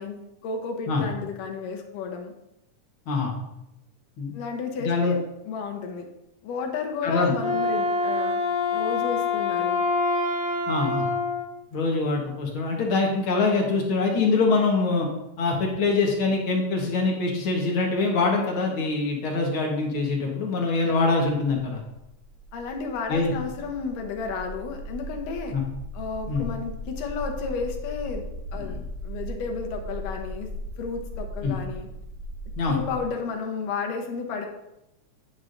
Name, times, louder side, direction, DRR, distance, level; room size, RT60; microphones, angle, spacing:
voice 1, 0.0-2.3 4.3-6.1 6.4-8.4 8.7-9.9 22.5-25.6 25.9-28.2 28.5-28.8 29.0-30.5 30.8-31.9 32.7-34.5, left 5 dB, 75° left, 3 dB, 2.4 m, -32 dB
voice 2, 4.8-5.1 7.0-7.3 10.7-11.1 11.7-15.1 15.4-21.8 23.1-23.3 25.5-25.6 26.3-26.4 28.6-28.8 31.4-31.5 32.6-32.8, left 3 dB, 60° left, -1 dB, 1.4 m, -24 dB
Wind instrument woodwind instrument, 7.3-11.5, left 3 dB, 15° left, 2.1 m, -25 dB
sound 1, 21.7-33.0, equal, 60° right, 2.6 m, -38 dB
9.5 x 7.1 x 2.6 m, 0.88 s
omnidirectional pair, 3.9 m